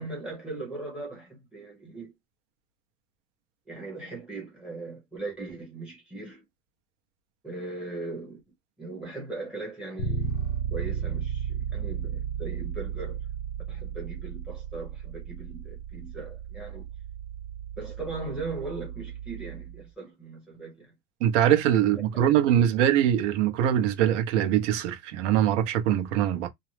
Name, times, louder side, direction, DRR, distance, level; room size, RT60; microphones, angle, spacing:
voice 1, 0.0-2.1 3.7-6.4 7.4-8.4 8.8-10.4 10.7-13.2 13.7-16.9 17.8-20.9 21.9-22.6, right 3 dB, ahead, 0.8 m, -39 dB
Bass guitar, 10.0-19.8, right 7 dB, 35° left, 0.5 m, -34 dB
voice 2, 21.2-26.5, right 10 dB, 60° right, 0.8 m, -23 dB
2.6 x 2.1 x 3.1 m
supercardioid pair, 175°, 40 cm